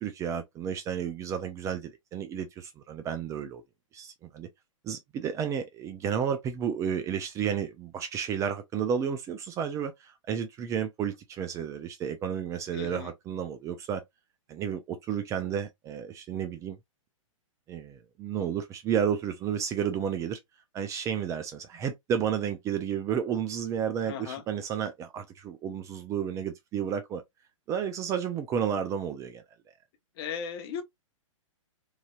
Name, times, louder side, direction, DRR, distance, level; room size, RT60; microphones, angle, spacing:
voice 1, 0.0-3.6 3.9-4.5 4.8-14.0 14.5-16.8 17.7-20.4 20.7-27.2 27.7-29.4, right 8 dB, 20° right, 0.3 m, -32 dB
voice 2, 12.7-13.1 24.1-24.4 30.2-30.8, left 7 dB, 45° left, 0.7 m, -36 dB
3.1 x 2.6 x 2.2 m
hypercardioid pair, 120°, 17 cm